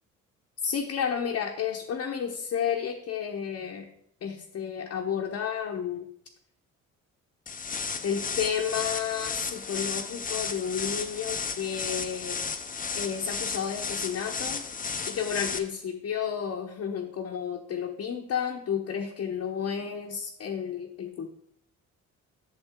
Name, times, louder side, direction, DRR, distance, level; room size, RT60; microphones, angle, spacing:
voice 1, 0.6-3.9 4.2-6.0 8.0-12.4 12.9-14.6 15.1-21.3, left 7 dB, 55° left, -1 dB, 0.9 m, -31 dB
sound 1, 7.5-15.6, left 5 dB, 30° left, 0.7 m, -34 dB
8.2 x 7.0 x 3.6 m, 0.67 s
cardioid pair, 90°, 30 cm